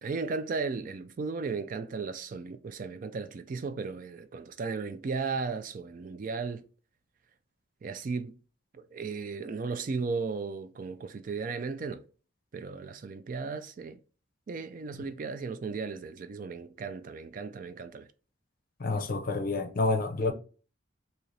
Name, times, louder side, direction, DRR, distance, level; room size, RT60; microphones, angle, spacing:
voice 1, 0.0-6.6 7.8-8.4 8.7-12.0 12.5-14.0 14.5-18.1, right 4 dB, 40° right, 0.3 m, -35 dB
voice 2, 18.8-20.3, left 3 dB, 45° left, 0.5 m, -28 dB
4.0 x 2.8 x 3.2 m
head